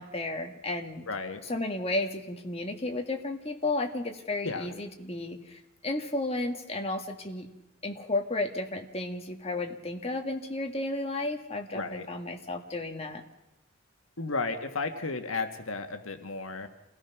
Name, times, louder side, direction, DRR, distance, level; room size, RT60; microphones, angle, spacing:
voice 1, 0.0-1.1 1.4-7.5 7.8-13.2, left 2 dB, 30° left, 4 dB, 1.9 m, -33 dB
voice 2, 1.1-1.4 4.4-4.7 11.7-12.1 14.2-16.7, left 3 dB, 75° left, 7 dB, 1.6 m, -33 dB
28.0 x 17.5 x 5.9 m, 0.96 s
head